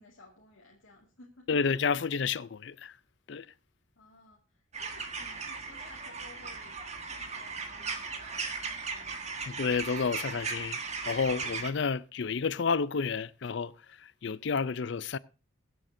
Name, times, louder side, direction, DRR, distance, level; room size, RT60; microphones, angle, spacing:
voice 1, 0.0-1.5 4.0-9.5, left 2 dB, 75° left, 2.2 m, -57 dB
voice 2, 1.5-2.9 3.3-3.5 9.5-10.8 11.0-13.7 14.0-15.2, left 5 dB, 60° left, 0.5 m, -30 dB
sound 1, 4.7-11.7, right 4 dB, 35° right, 1.6 m, -37 dB
22.5 x 7.8 x 2.7 m
head